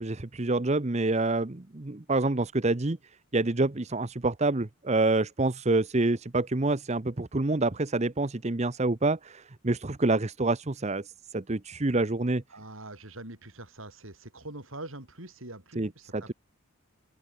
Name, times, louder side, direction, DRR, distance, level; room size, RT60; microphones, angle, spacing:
voice 1, 0.0-3.0 3.3-12.4 15.8-16.3, right 2 dB, 35° right, 0.9 m, -27 dB
voice 2, 12.5-16.3, right 2 dB, 75° right, 7.2 m, -44 dB
open air
head